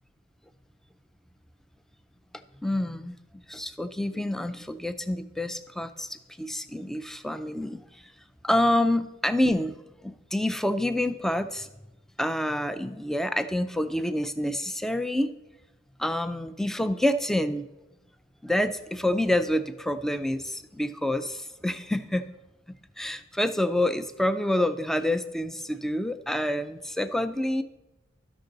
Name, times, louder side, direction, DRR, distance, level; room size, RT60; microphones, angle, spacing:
voice 1, 2.6-3.2 3.5-8.1 8.4-11.7 12.2-15.3 16.0-17.7 18.4-22.2 22.7-27.6, left 1 dB, ahead, 9 dB, 0.3 m, -27 dB
13.0 x 6.0 x 3.8 m, 1.0 s
head